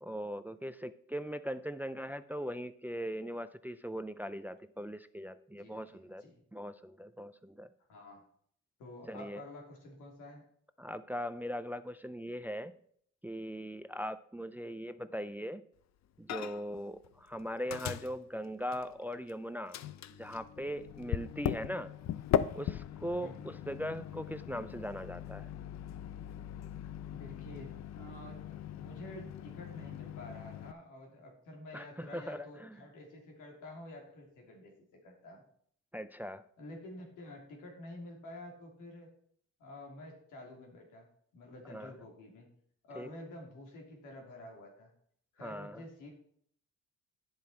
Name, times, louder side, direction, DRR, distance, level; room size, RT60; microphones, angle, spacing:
voice 1, 0.0-6.2 6.5-7.7 9.1-9.4 10.8-12.7 13.2-15.6 16.2-19.8 20.2-21.9 22.5-25.5 31.7-32.8 35.9-36.4 41.7-41.9 43.0-43.1 45.4-45.8, equal, 5° right, 13 dB, 0.4 m, -40 dB
voice 2, 5.6-6.4 7.9-8.2 8.8-10.4 23.2-23.5 26.8-35.4 36.6-39.1 39.6-41.1 41.3-42.5 42.8-44.9 45.3-46.1, left 1 dB, 85° left, 1 dB, 2.9 m, -49 dB
Microwave oven, 16.3-16.8 17.0-19.3 19.7-30.7, left 10 dB, 65° left, 0.6 m, -39 dB
9.7 x 7.4 x 4.3 m, 0.63 s
cardioid pair, 90°, 30 cm